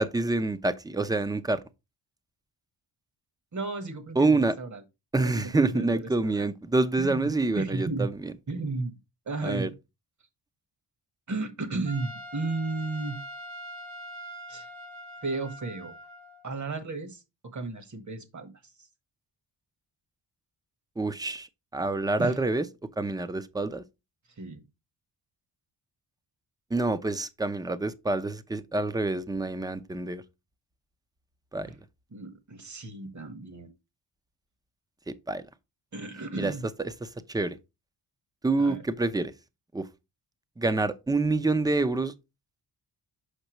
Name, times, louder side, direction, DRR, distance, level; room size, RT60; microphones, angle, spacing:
voice 1, 0.0-1.6 4.2-4.5 5.1-8.3 9.4-9.7 21.0-21.5 21.7-22.7 23.0-23.8 26.7-30.2 31.5-31.7 35.1-35.4 36.4-36.5 36.8-37.6 38.4-39.3 39.7-39.9 40.6-42.1, right 3 dB, 10° right, 0.5 m, -27 dB
voice 2, 3.5-4.8 5.2-6.5 7.0-7.3 7.6-8.1 8.5-8.9 9.3-9.7 11.3-13.2 14.5-14.7 15.2-16.0 16.4-17.2 17.5-18.5 22.2-22.4 24.4-24.6 31.6-31.7 32.1-33.7 35.9-36.7 38.6-38.8, right 3 dB, 45° right, 1.3 m, -34 dB
Trumpet, 11.9-16.5, equal, 75° right, 1.3 m, -43 dB
6.7 x 5.3 x 3.0 m
wide cardioid pair, 105°, 41 cm